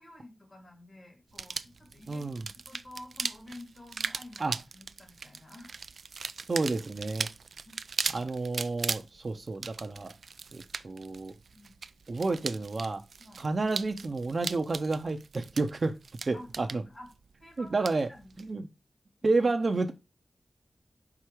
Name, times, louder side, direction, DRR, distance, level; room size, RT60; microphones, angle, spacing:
voice 1, 0.0-2.3 2.7-4.5 4.7-5.7 7.7-7.8 11.5-11.8 13.2-13.4 16.3-17.1 17.4-18.5 19.2-19.3, left 1 dB, 45° left, 2.7 m, -50 dB
sound 1, 1.3-18.5, right 5 dB, 80° right, 0.3 m, -39 dB
voice 2, 2.1-2.5 4.4-4.5 6.5-7.3 8.1-10.1 10.5-11.3 12.1-13.0 13.4-16.0 16.3-16.8 17.6-18.1 18.4-18.7 19.2-19.9, right 3 dB, 55° right, 0.7 m, -30 dB
5.5 x 4.9 x 4.6 m
wide cardioid pair, 80°, 0 cm